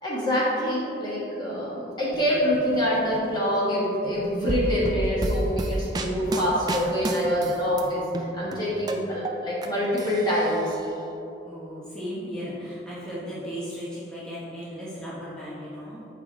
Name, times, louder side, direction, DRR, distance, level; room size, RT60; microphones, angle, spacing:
voice 1, 0.0-10.7, equal, 25° left, -7 dB, 1.2 m, -25 dB
sound 1, 2.1-4.7 5.0-7.9, right 1 dB, 50° right, 0.7 m, -44 dB
sound 2, 4.5-7.8 8.1-9.7 10.0-10.9, right 2 dB, 20° right, 0.3 m, -30 dB
voice 2, 11.4-16.0, equal, 5° left, -10 dB, 1.2 m, -36 dB
7.9 x 4.6 x 3.6 m, 2.9 s
head